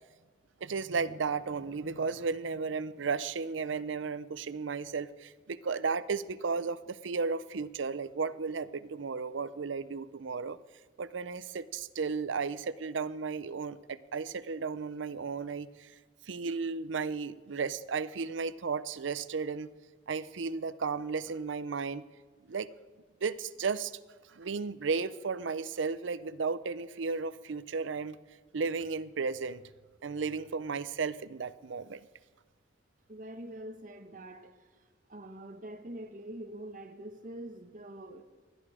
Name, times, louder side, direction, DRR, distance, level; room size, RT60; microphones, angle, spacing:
voice 1, 0.6-10.6 11.0-15.9 16.3-19.7 20.1-22.0 22.5-22.7 23.2-23.9 24.3-28.2 28.5-29.7 30.0-32.1, right 5 dB, 85° right, 0.6 m, -34 dB
voice 2, 33.1-38.2, right 1 dB, 45° right, 1.1 m, -45 dB
19.5 x 13.0 x 4.9 m
head